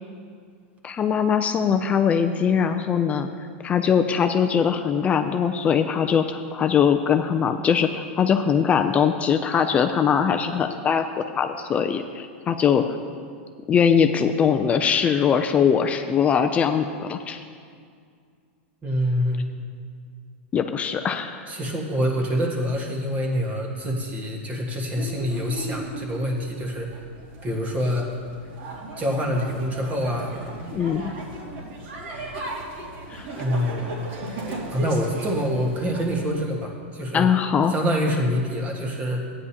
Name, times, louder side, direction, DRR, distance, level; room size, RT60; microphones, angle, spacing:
voice 1, 0.8-3.3 3.6-12.8 13.7-17.4 20.5-21.5 30.7-31.1 33.1-33.2 37.1-37.7, left 7 dB, 20° left, 7 dB, 0.4 m, -21 dB
voice 2, 18.8-19.5 21.5-26.9 27.4-28.1 29.0-30.3 33.4-33.9 34.7-37.3 37.7-39.2, equal, 20° right, 0 dB, 1.5 m, -26 dB
sound 1, 24.9-36.4, right 1 dB, 65° right, 2.4 m, -36 dB
14.5 x 9.7 x 2.9 m, 2.2 s
supercardioid pair, 140°, 6 cm